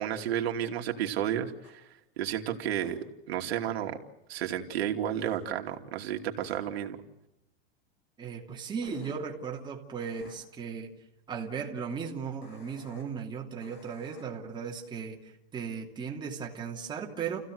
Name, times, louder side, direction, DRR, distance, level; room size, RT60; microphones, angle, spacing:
voice 1, 0.0-1.8 2.2-3.0 3.3-4.0 4.3-7.0, right 10 dB, 85° right, 3 dB, 2.8 m, -32 dB
sound 1, 1.6-1.7 2.8-2.9 5.2-5.4 6.4-6.6 8.8-9.1 10.0-10.3 12.4-13.0 13.6-14.2, left 5 dB, 45° left, 7.3 m, -54 dB
voice 2, 8.2-10.9 11.3-17.4, right 6 dB, 15° right, 0 dB, 2.8 m, -37 dB
29.5 x 16.0 x 7.9 m, 0.93 s
supercardioid pair, 160°, 30 cm